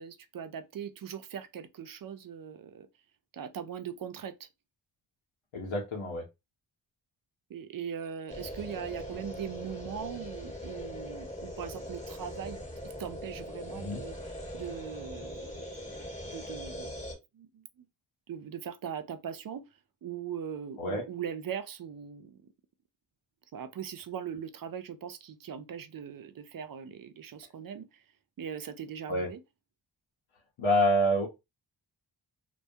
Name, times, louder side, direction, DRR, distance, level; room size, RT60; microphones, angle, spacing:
voice 1, 0.0-2.9 3.3-4.5 7.5-12.6 13.0-16.9 17.3-17.9 18.3-19.6 20.0-22.5 23.5-28.0 28.4-29.4, right 8 dB, 45° right, 0.5 m, -40 dB
voice 2, 5.5-6.2 13.7-14.0 20.8-21.0 29.1-29.3 30.6-31.3, equal, 75° left, 0.9 m, -27 dB
sound 1, 8.3-17.2, equal, 15° left, 1.3 m, -41 dB
2.2 x 2.2 x 2.7 m
cardioid pair, 45°, 48 cm